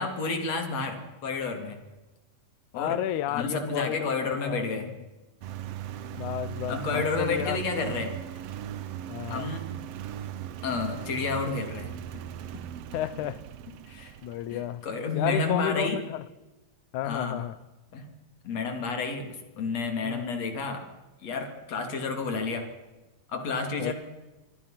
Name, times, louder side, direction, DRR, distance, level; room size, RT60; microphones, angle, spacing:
voice 1, 0.0-1.8 2.7-3.0 3.3-4.9 6.7-8.1 9.3-9.7 10.6-11.9 13.9-14.1 14.5-16.0 17.0-17.5 17.9-18.1 18.4-20.9 21.2-22.7 23.3-23.9, left 4 dB, 50° left, 5 dB, 4.2 m, -30 dB
voice 2, 2.7-4.9 6.1-7.6 9.1-9.5 12.9-13.4 14.2-14.8 15.1-16.3 16.9-17.6 20.0-20.4 23.8-23.9, left 12 dB, 70° left, 17 dB, 2.1 m, -32 dB
Engine, 5.4-14.8, right 11 dB, 65° right, 1.6 m, -38 dB
27.5 x 24.0 x 5.9 m, 1.1 s
omnidirectional pair, 3.9 m